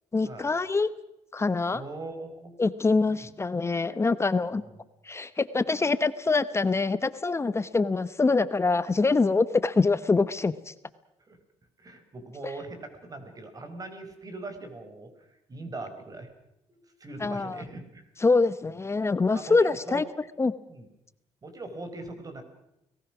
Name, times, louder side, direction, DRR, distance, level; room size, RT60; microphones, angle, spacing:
voice 1, 0.1-0.9 1.3-1.8 2.6-4.6 5.0-10.7 17.2-17.6 18.2-20.0 20.4-20.5, left 3 dB, 25° left, 14 dB, 0.9 m, -24 dB
voice 2, 1.7-2.5 3.0-3.3 4.6-4.8 11.3-11.4 11.8-16.3 16.7-18.1 19.3-20.0 20.7-20.9 21.4-22.4, right 2 dB, 30° right, 8 dB, 4.7 m, -41 dB
30.0 x 19.0 x 6.1 m, 0.87 s
cardioid pair, 100°, 11 cm